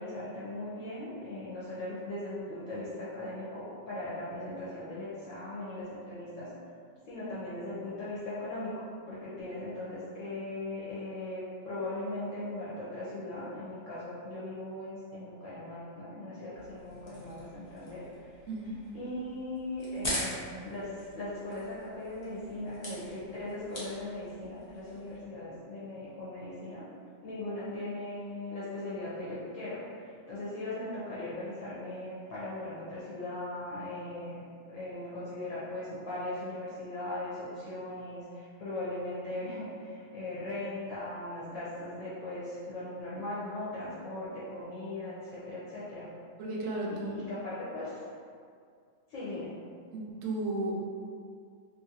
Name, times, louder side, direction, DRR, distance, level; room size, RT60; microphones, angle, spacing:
voice 1, 0.0-6.5 7.1-18.1 18.9-26.8 27.2-46.1 46.9-48.1 49.1-49.5, left 1 dB, 70° left, -9 dB, 1.0 m, -39 dB
sound 1, 16.5-25.2, left 1 dB, 40° left, 0.6 m, -43 dB
voice 2, 18.5-18.8 46.4-47.4 49.9-50.7, right 2 dB, 75° right, -2 dB, 0.9 m, -34 dB
2.9 x 2.5 x 2.6 m, 2.2 s
omnidirectional pair, 1.4 m